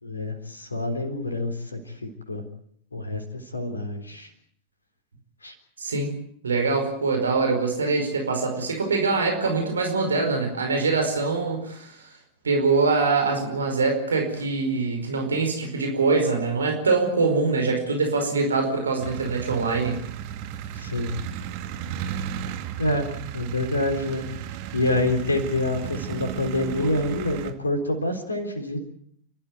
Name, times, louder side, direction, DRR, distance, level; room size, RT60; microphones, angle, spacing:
voice 1, 0.0-2.4 2.9-4.3 5.4-5.5 20.8-21.1 22.8-23.1 23.3-24.3 24.7-28.8, left 1 dB, 80° left, 6 dB, 3.8 m, -27 dB
voice 2, 5.8-6.1 6.4-12.1 12.4-20.0, right 4 dB, 70° right, 4 dB, 5.0 m, -24 dB
sound 1, 19.0-27.5, right 9 dB, 45° right, 2.2 m, -34 dB
29.5 x 13.5 x 9.3 m, 0.65 s
figure-of-eight pair, 90°, 0 cm